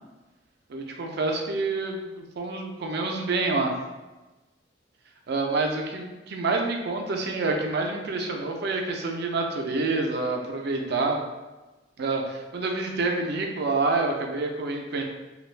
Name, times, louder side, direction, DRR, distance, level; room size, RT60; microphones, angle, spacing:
voice 1, 0.7-3.7 5.3-11.2 12.0-15.0, right 3 dB, 60° right, 2 dB, 0.4 m, -27 dB
2.6 x 2.2 x 3.2 m, 1.1 s
head